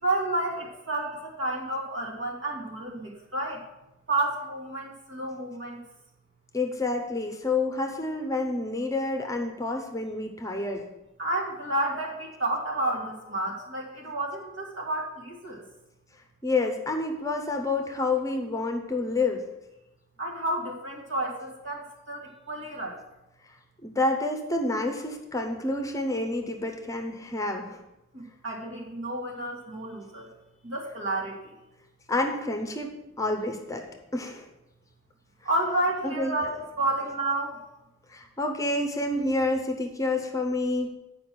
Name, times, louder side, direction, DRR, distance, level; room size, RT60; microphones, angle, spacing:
voice 1, 0.0-3.6 4.1-5.8 11.2-15.6 20.2-22.2 22.5-23.0 28.1-30.3 30.6-31.4 35.4-37.6, right 2 dB, 70° right, -2 dB, 2.1 m, -30 dB
voice 2, 6.5-10.8 16.4-19.4 23.8-27.8 32.1-32.9 33.2-33.9 34.1-34.4 36.0-36.3 38.1-40.9, left 2 dB, 15° left, 4 dB, 0.7 m, -28 dB
9.0 x 5.1 x 6.0 m, 0.95 s
head